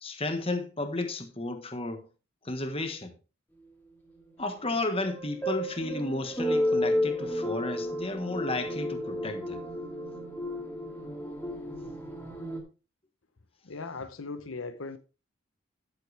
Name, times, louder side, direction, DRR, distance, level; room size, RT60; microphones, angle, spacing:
voice 1, 0.0-2.0 2.4-3.1 4.4-9.6, left 2 dB, 25° left, 1.3 m, -33 dB
sound 1, 4.7-12.6, left 1 dB, 10° left, 2.4 m, -32 dB
voice 2, 13.6-15.0, left 4 dB, 75° left, 0.8 m, -38 dB
12.5 x 7.7 x 3.3 m
head